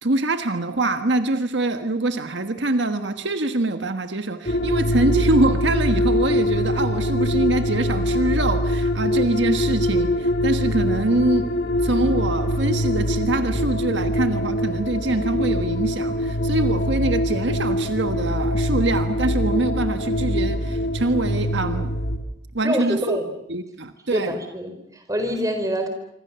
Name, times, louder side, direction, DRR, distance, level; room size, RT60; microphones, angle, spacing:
voice 1, 0.0-11.5 11.8-21.9 22.5-23.2 23.5-24.4, right 2 dB, 70° right, 8 dB, 1.5 m, -24 dB
sound 1, 4.5-22.2, left 1 dB, 55° left, 3.2 m, -23 dB
voice 2, 22.6-23.3 24.1-25.9, equal, 15° right, 6 dB, 4.5 m, -26 dB
26.5 x 26.0 x 7.0 m, 0.78 s
head